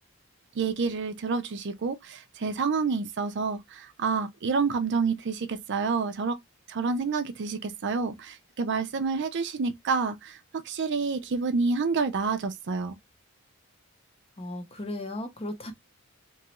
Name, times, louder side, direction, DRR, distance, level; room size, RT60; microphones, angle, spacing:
voice 1, 0.6-6.4 6.7-13.0, right 4 dB, 55° right, 0.5 m, -28 dB
voice 2, 14.4-15.7, left 1 dB, 25° left, 0.7 m, -36 dB
3.0 x 2.3 x 2.9 m
head